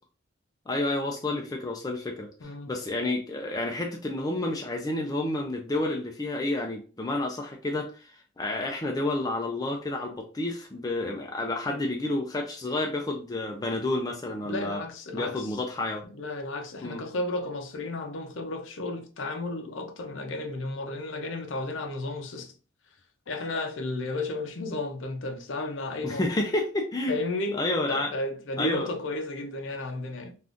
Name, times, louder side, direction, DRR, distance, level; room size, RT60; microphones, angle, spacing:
voice 1, 0.7-2.3 2.7-14.8 15.1-16.0 16.8-17.0 26.0-27.1 27.5-28.1 28.6-28.9, left 2 dB, 20° left, 0.4 m, -30 dB
voice 2, 2.4-2.8 11.7-11.8 14.4-15.5 16.1-22.5 23.3-26.3 27.1-27.6 27.9-30.3, left 2 dB, 70° left, 0.6 m, -33 dB
3.4 x 2.5 x 2.5 m
head